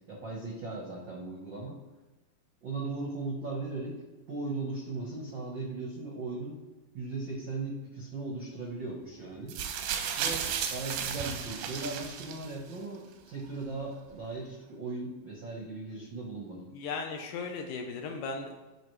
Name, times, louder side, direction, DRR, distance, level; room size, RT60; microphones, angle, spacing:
voice 1, 0.1-1.8 2.6-4.0 4.3-6.6 6.9-9.6 10.2-16.7, right 3 dB, 75° right, -2 dB, 1.0 m, -38 dB
sound 1, 9.5-12.7 13.6-13.7, right 8 dB, 90° right, 2.6 m, -34 dB
voice 2, 16.7-18.6, left 4 dB, 75° left, 4 dB, 2.0 m, -36 dB
15.5 x 5.4 x 3.2 m, 1.1 s
omnidirectional pair, 4.1 m